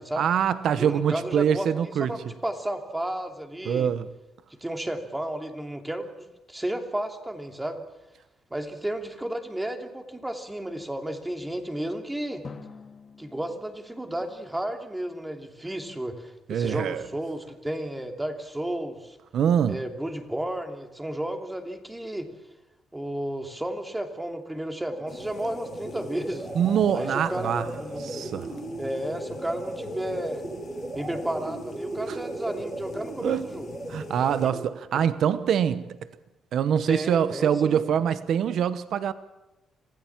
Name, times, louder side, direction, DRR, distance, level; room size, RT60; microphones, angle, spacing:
voice 1, 0.2-2.1 3.6-4.1 16.5-17.0 19.3-19.8 26.5-27.7 28.0-28.5 32.1-32.2 33.2-33.4 33.9-36.0 36.5-39.1, right 8 dB, 70° right, 1.0 m, -24 dB
voice 2, 0.8-1.7 2.0-3.9 4.6-7.8 8.5-12.4 13.2-19.2 19.7-22.3 22.9-26.5 26.9-28.4 28.8-30.4 30.9-33.7 36.9-37.8, right 1 dB, 10° right, 2.9 m, -33 dB
Drum, 12.4-15.3, left 4 dB, 40° left, 2.4 m, -47 dB
sound 1, 24.9-34.9, right 2 dB, 35° right, 4.6 m, -37 dB
sound 2, 25.1-34.5, left 7 dB, 55° left, 1.7 m, -45 dB
26.5 x 16.0 x 7.4 m
cardioid pair, 90°, 0 cm